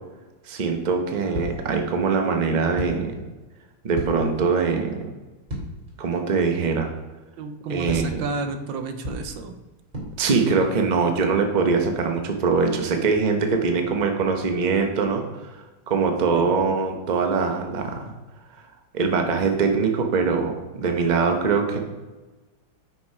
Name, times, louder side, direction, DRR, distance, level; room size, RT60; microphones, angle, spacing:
voice 1, 0.5-3.1 3.8-5.1 6.0-6.9 7.7-8.2 10.2-15.5 15.9-18.1 18.9-21.8, right 5 dB, 55° right, 3 dB, 0.4 m, -22 dB
sound 1, 1.3-1.9 2.7-3.3 3.9-4.6 5.5-6.0 6.3-6.4 7.9-8.4 9.0-9.5 9.9-10.4, left 1 dB, 20° right, 2.6 m, -34 dB
voice 2, 7.4-9.5 16.3-16.5, right 3 dB, 75° right, 8 dB, 1.4 m, -31 dB
6.1 x 5.7 x 4.7 m, 1.2 s
omnidirectional pair, 2.2 m